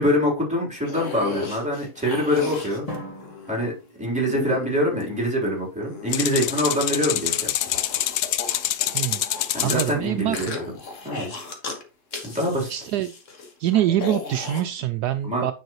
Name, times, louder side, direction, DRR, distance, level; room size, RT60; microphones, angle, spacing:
voice 1, 0.0-2.9 3.5-3.7 4.0-7.5 9.5-10.5 11.0-11.3 12.2-12.7 15.2-15.5, left 1 dB, 5° right, 3.5 m, -24 dB
sound 1, 0.7-3.7 4.3-5.3 5.8-9.9 10.3-11.8 12.1-14.6, left 4 dB, 50° left, 1.8 m, -36 dB
Drum, 2.9-4.9, equal, 20° left, 1.8 m, -40 dB
sound 2, 6.1-9.9, left 12 dB, 80° left, 1.2 m, -26 dB
voice 2, 9.6-10.6 12.7-13.1 13.6-15.5, right 12 dB, 75° right, 1.1 m, -25 dB
9.3 x 5.5 x 3.0 m
omnidirectional pair, 1.8 m